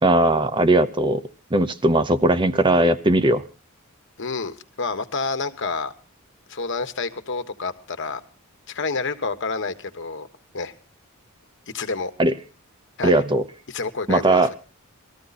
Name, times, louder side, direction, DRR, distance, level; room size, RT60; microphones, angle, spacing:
voice 1, 0.0-1.2 1.5-3.4 12.2-12.3 13.0-13.4 14.1-14.5, right 2 dB, 20° right, 11 dB, 0.7 m, -18 dB
voice 2, 4.2-5.9 6.5-8.2 8.7-10.3 10.5-10.7 11.7-12.1 13.0-13.2 13.7-14.6, left 4 dB, 55° left, 8 dB, 1.3 m, -29 dB
19.5 x 14.0 x 4.1 m, 0.34 s
head